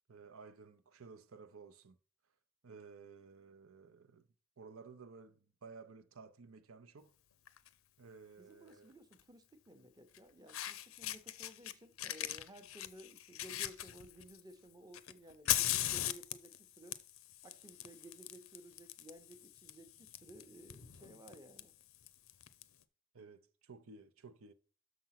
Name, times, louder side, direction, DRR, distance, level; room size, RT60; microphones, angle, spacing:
voice 1, 0.1-2.0 2.6-4.3 4.6-7.1 8.0-8.9 23.1-24.5, right 4 dB, 90° right, 0.7 m, -55 dB
Fire, 7.5-7.7 9.1-9.2 10.1-10.2 10.5-11.7 12.0-14.4 14.9-22.6, left 13 dB, 85° left, 0.6 m, -40 dB
voice 2, 8.4-17.0 17.4-21.7, right 1 dB, 20° right, 0.7 m, -56 dB
6.4 x 6.0 x 5.7 m
head